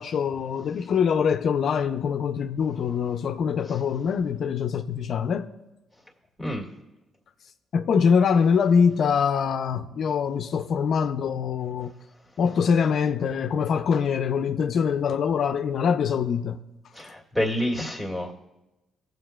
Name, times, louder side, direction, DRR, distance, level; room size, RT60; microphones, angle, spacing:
voice 1, 0.0-5.5 7.7-11.9 12.4-16.6, left 6 dB, 60° left, 0.4 m, -24 dB
voice 2, 16.9-18.3, left 1 dB, 10° right, 1.8 m, -28 dB
21.0 x 7.7 x 2.2 m
cardioid pair, 90°, 0 cm